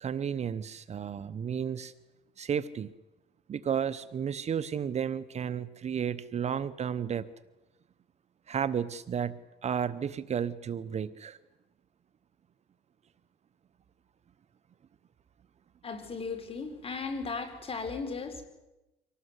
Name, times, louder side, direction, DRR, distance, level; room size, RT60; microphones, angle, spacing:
voice 1, 0.0-1.9 2.4-2.9 3.5-7.2 8.5-9.3 9.6-11.4, right 8 dB, 40° right, 15 dB, 0.9 m, -32 dB
voice 2, 15.8-18.4, left 4 dB, 35° left, 6 dB, 4.4 m, -36 dB
25.0 x 18.5 x 8.2 m, 1.0 s
cardioid pair, 110°, 17 cm